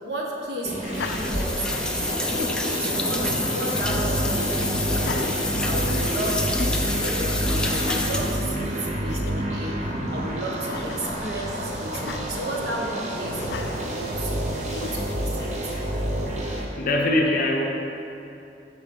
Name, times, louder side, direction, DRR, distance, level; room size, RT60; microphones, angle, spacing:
voice 1, 0.0-13.4 13.8-15.7, right 1 dB, 65° right, -2 dB, 1.3 m, -33 dB
sound 1, 0.6-16.6, right 1 dB, 40° right, 0.8 m, -28 dB
Laughter, 0.8-1.9 2.3-2.9 3.7-4.2 4.9-6.2 6.6-6.8 7.7-8.3 8.8-8.9 9.1-9.5 10.6-11.2 11.9-12.2 13.4-13.9 14.7-15.3, left 5 dB, 70° left, 0.4 m, -37 dB
sound 2, 0.9-8.8, left 2 dB, 5° left, 0.5 m, -28 dB
voice 2, 16.4-17.6, left 1 dB, 50° left, 1 dB, 0.9 m, -23 dB
13.5 x 4.7 x 3.8 m, 2.8 s
head